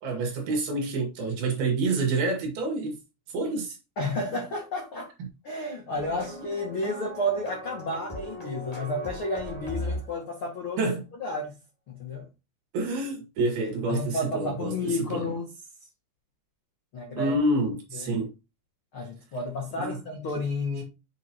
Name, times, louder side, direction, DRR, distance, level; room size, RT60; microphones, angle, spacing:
voice 1, 0.0-3.0 3.3-3.8 10.8-11.0 12.7-15.3 17.2-18.3 19.8-20.0, right 2 dB, 60° right, 3.4 m, -28 dB
voice 2, 4.0-5.1 5.4-10.8 11.2-11.6 11.9-12.3 13.9-15.5 16.9-17.4 17.9-18.1 18.9-20.8, left 1 dB, 65° left, 1.3 m, -31 dB
sound 1, 6.0-10.4, equal, 40° left, 0.5 m, -37 dB
7.0 x 6.4 x 2.9 m
omnidirectional pair, 5.3 m